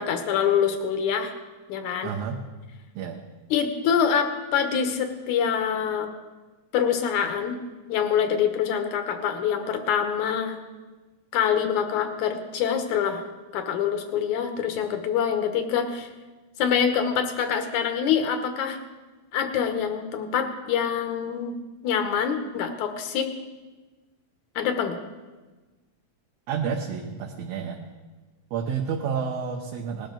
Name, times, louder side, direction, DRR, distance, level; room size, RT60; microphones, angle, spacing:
voice 1, 0.0-1.3 1.7-2.1 3.5-6.1 6.7-7.6 7.9-10.6 11.3-13.2 13.5-16.1 16.6-18.8 19.3-21.5 21.8-23.3 24.6-25.0, left 7 dB, 90° left, 6 dB, 2.5 m, -25 dB
voice 2, 2.0-2.4 3.0-3.2 26.5-27.8 28.5-30.1, right 6 dB, 70° right, 1 dB, 2.0 m, -30 dB
19.5 x 12.0 x 3.9 m, 1.3 s
omnidirectional pair, 3.3 m